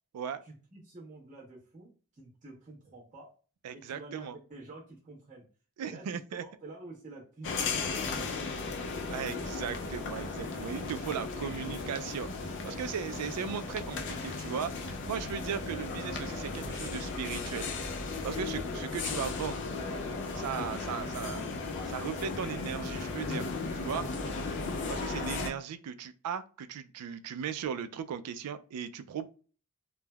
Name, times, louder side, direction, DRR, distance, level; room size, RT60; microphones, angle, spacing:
voice 1, 0.4-3.3 3.7-5.5 5.8-8.8, right 2 dB, 35° right, 1.0 m, -49 dB
voice 2, 3.6-4.4 5.8-6.4 9.1-17.7 18.2-19.6 20.3-21.4 21.9-23.5 23.7-24.1 24.9-29.3, right 7 dB, 90° right, 0.3 m, -37 dB
sound 1, 7.4-25.5, left 3 dB, 55° left, 0.4 m, -36 dB
3.2 x 2.1 x 2.2 m
head